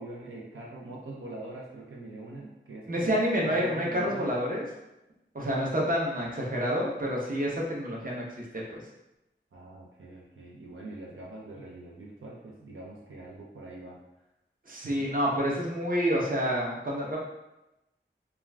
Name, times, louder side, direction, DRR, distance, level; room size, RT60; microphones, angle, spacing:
voice 1, 0.0-3.2 3.4-4.3 9.5-14.0 14.7-15.1, right 2 dB, 80° right, -5 dB, 0.5 m, -43 dB
voice 2, 2.9-4.6 5.3-8.2 8.7-8.8 14.7-17.2, equal, 45° right, -3 dB, 0.7 m, -28 dB
2.4 x 2.3 x 3.2 m, 0.93 s
wide cardioid pair, 60°, 21 cm